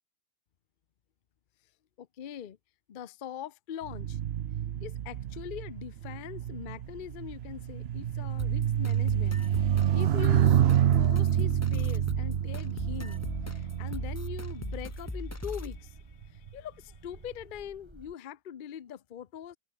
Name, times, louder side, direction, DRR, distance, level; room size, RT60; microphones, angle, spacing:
voice 1, 2.0-2.6 2.9-4.2 4.8-19.6, left 9 dB, 50° left, 0.6 m, -42 dB
sound 1, 3.8-15.5 16.2-16.5, right 10 dB, 65° right, 0.6 m, -28 dB
sound 2, 6.8-18.1, right 1 dB, 15° right, 3.1 m, -54 dB
sound 3, 8.4-15.8, left 2 dB, 10° left, 1.1 m, -39 dB
omnidirectional pair, 1.8 m